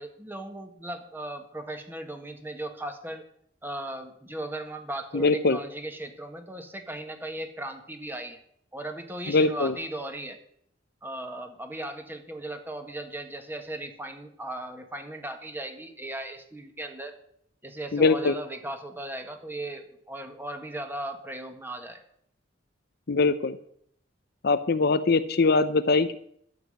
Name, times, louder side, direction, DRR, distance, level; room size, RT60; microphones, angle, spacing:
voice 1, 0.0-3.2 3.6-8.4 8.7-10.4 11.0-17.1 17.6-22.0, right 1 dB, 10° right, 6 dB, 1.5 m, -37 dB
voice 2, 5.1-5.6 9.3-9.7 17.9-18.3 23.1-23.6 24.4-26.2, left 3 dB, 55° left, 12 dB, 0.7 m, -22 dB
12.0 x 7.1 x 9.0 m, 0.68 s
head